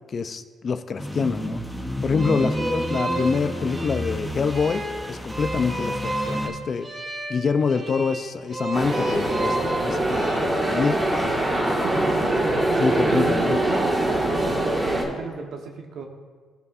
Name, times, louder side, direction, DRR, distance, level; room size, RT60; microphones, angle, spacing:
voice 1, 0.1-1.6 2.0-6.9 7.3-11.4 12.8-13.6, left 5 dB, 45° left, 10 dB, 0.5 m, -26 dB
sound 1, 1.0-6.5, equal, ahead, 0.8 m, -31 dB
sound 2, 2.1-10.4, right 1 dB, 40° right, 1.3 m, -31 dB
sound 3, 8.7-15.0, right 1 dB, 20° right, 1.9 m, -23 dB
voice 2, 11.6-12.2 12.9-16.1, right 4 dB, 70° right, 3 dB, 1.0 m, -33 dB
16.0 x 5.4 x 2.5 m, 1.5 s
cardioid pair, 90°, 0 cm